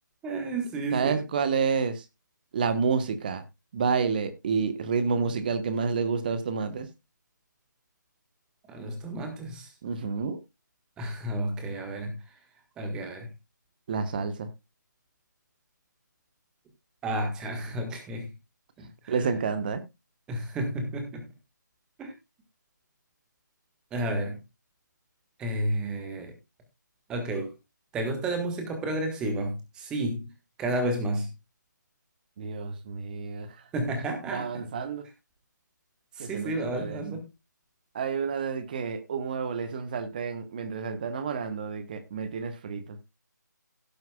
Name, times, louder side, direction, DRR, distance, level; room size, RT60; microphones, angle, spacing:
voice 1, 0.2-1.2 8.7-9.7 11.0-12.2 12.8-13.3 17.0-18.3 18.8-19.3 20.3-21.3 22.0-22.1 23.9-24.4 25.4-26.3 27.1-27.5 27.9-30.3 30.6-31.3 33.7-34.7 36.1-37.3, right 1 dB, 5° right, 1.5 m, -31 dB
voice 2, 0.9-2.0 2.5-3.4 3.7-6.9 9.8-10.4 13.9-14.5 19.1-19.8 32.4-33.5 34.3-35.1 36.2-37.0 37.9-43.0, right 5 dB, 25° right, 1.1 m, -29 dB
17.0 x 7.7 x 2.3 m
figure-of-eight pair, 155°, 10 cm